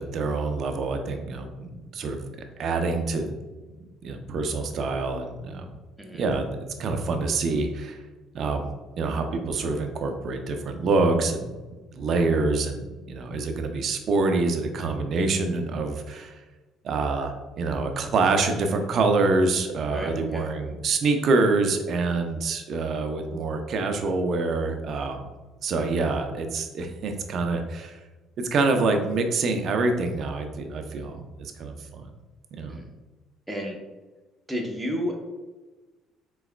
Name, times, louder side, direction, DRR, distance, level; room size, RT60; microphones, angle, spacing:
voice 1, 0.0-2.3 2.6-3.4 4.0-5.7 6.1-8.0 8.3-8.7 9.0-11.6 11.9-16.4 16.8-25.3 25.6-28.0 28.4-32.1 32.5-32.8, right 3 dB, 55° right, 5 dB, 0.6 m, -26 dB
voice 2, 19.9-20.5 32.7-32.8 33.5-33.8 34.5-35.1, equal, 5° right, 0 dB, 0.9 m, -31 dB
4.6 x 4.0 x 2.2 m, 1.2 s
supercardioid pair, 90°, 0 cm